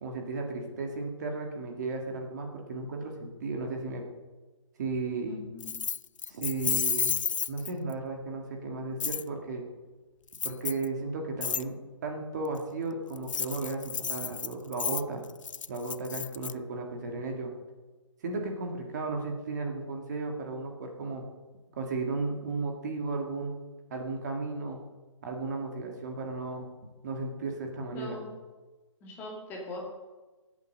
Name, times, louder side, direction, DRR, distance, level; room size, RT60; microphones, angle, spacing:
voice 1, 0.0-4.0 4.8-5.4 6.3-7.2 7.5-9.6 10.4-11.8 12.0-15.2 15.7-17.5 18.2-21.2 21.8-23.6 23.9-24.8 25.2-26.7 27.0-28.2, right 3 dB, 35° right, 2 dB, 2.1 m, -34 dB
voice 2, 5.3-5.8 27.9-28.3 29.0-29.9, left 2 dB, 10° left, -2 dB, 2.1 m, -41 dB
Keys jangling, 5.6-7.9 9.0-9.2 10.3-10.9 11.4-11.6 13.1-16.5, left 7 dB, 80° left, 0.5 m, -31 dB
18.5 x 8.4 x 6.6 m, 1.2 s
hypercardioid pair, 165°, 16 cm